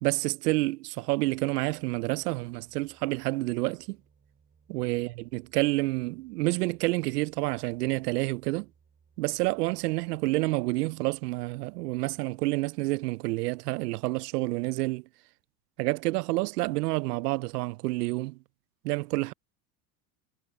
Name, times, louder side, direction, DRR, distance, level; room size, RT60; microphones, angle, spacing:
voice 1, 0.0-4.0 4.7-8.7 9.2-15.0 15.8-18.4 18.8-19.3, right 21 dB, 80° right, 0.6 m, -29 dB
sound 1, 1.2-12.5, right 6 dB, 25° right, 4.7 m, -65 dB
hypercardioid pair, 85°, 46 cm